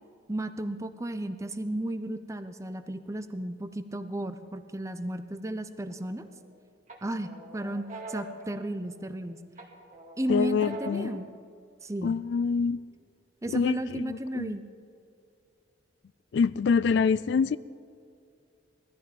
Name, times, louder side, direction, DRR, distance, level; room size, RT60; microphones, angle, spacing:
voice 1, 0.3-6.3 7.0-9.4 10.2-11.3 11.8-12.1 13.4-14.6, right 1 dB, 15° right, 10 dB, 0.6 m, -34 dB
sound 1, 5.9-6.5 6.9-9.2 9.6-11.2, right 2 dB, 40° right, 2.3 m, -43 dB
voice 2, 10.3-11.2 12.0-12.8 13.5-14.5 16.3-17.6, left 5 dB, 65° left, 18 dB, 0.3 m, -26 dB
18.0 x 13.5 x 5.2 m, 2.4 s
head